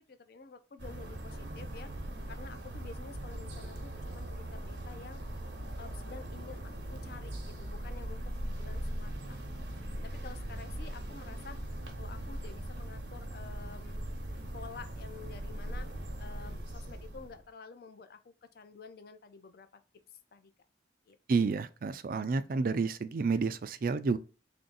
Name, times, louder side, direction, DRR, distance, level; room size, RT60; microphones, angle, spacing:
voice 1, 0.1-1.9 2.3-5.2 5.8-9.5 10.0-14.1 14.5-15.9 16.2-19.8 20.3-20.5 21.1-21.2, left 5 dB, 55° left, 0.5 m, -50 dB
sound 1, 0.8-17.4, right 1 dB, 75° right, 0.9 m, -40 dB
voice 2, 21.3-24.2, right 4 dB, 50° right, 0.4 m, -30 dB
3.4 x 2.7 x 3.8 m
head